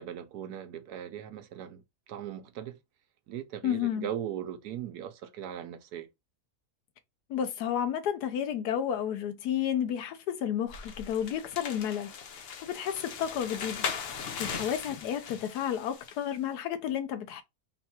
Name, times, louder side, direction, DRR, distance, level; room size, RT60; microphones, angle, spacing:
voice 1, 0.0-2.8 3.3-6.1 14.4-14.7, right 10 dB, 85° right, 1.2 m, -39 dB
voice 2, 3.6-4.1 7.3-13.9 14.1-17.4, left 9 dB, 90° left, 1.3 m, -32 dB
sound 1, 10.7-16.2, left 6 dB, 60° left, 0.6 m, -39 dB
3.7 x 2.3 x 4.2 m
omnidirectional pair, 1.6 m